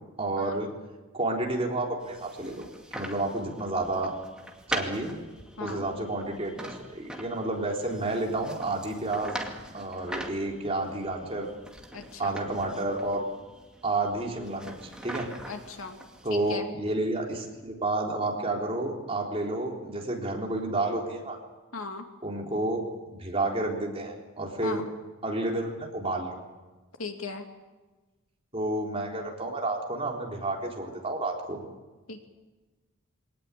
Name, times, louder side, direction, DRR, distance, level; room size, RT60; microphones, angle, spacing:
voice 1, 0.2-0.7 1.1-2.7 2.9-4.1 4.7-5.2 5.6-6.6 6.9-9.4 9.7-11.5 12.2-13.3 13.8-15.3 16.2-21.4 22.2-22.8 23.1-24.8 25.2-26.4 28.5-31.6, right 2 dB, 25° right, 0 dB, 3.9 m, -30 dB
sound 1, 2.0-16.5, right 1 dB, 5° right, 2.3 m, -42 dB
voice 2, 11.9-12.4 15.5-16.0 16.3-16.7 21.7-22.0 24.6-24.9 27.0-27.5 32.1-32.3, left 4 dB, 80° left, 4 dB, 2.8 m, -37 dB
24.0 x 18.5 x 8.5 m, 1.2 s
head